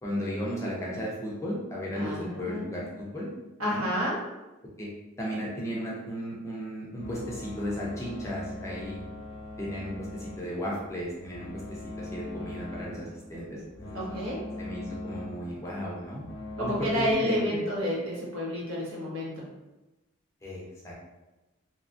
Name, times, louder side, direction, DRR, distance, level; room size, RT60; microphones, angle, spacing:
voice 1, 0.0-3.3 3.6-3.9 4.8-4.9 5.2-9.0 9.6-14.0 14.6-16.2 16.6-17.6 20.4-20.9, equal, 15° left, -5 dB, 0.5 m, -35 dB
voice 2, 1.9-2.9 3.6-4.2 13.9-14.5 16.6-19.5, equal, 80° right, -5 dB, 0.9 m, -30 dB
sound 1, 7.0-17.1, left 2 dB, 80° left, 0.6 m, -41 dB
2.7 x 2.3 x 2.5 m, 1.1 s
head